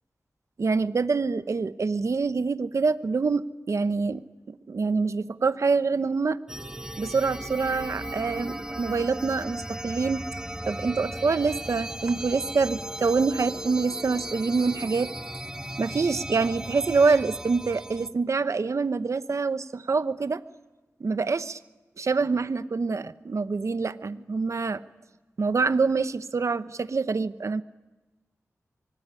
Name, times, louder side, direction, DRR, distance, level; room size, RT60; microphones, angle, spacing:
voice 1, 0.6-4.2 4.5-6.4 7.0-10.2 10.6-15.1 15.8-20.4 21.0-21.6 22.0-24.8 25.4-27.6, right 4 dB, 65° right, 12 dB, 0.9 m, -26 dB
sound 1, 6.5-18.1, right 1 dB, 10° right, 1.1 m, -36 dB
25.0 x 19.5 x 9.9 m, 1.1 s
wide cardioid pair, 60°, 6 cm